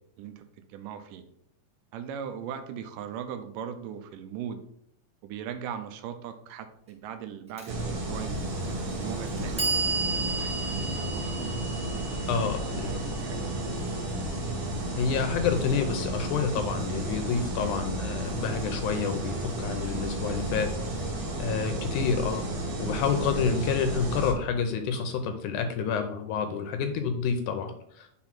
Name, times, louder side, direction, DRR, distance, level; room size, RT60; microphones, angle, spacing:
voice 1, 0.2-1.2 1.9-4.6 5.2-11.6 12.1-13.9, right 8 dB, 80° right, 7 dB, 2.2 m, -40 dB
Clock, 7.6-7.7 8.6-8.7 9.3-15.3, right 3 dB, 5° right, 1.2 m, -35 dB
sound 1, 7.7-24.3, right 1 dB, 50° right, 2.1 m, -32 dB
voice 2, 12.3-12.9 14.9-20.7 21.4-22.5 22.8-28.2, left 6 dB, 80° left, 7 dB, 1.9 m, -29 dB
6.1 x 3.8 x 5.8 m, 0.73 s
omnidirectional pair, 3.9 m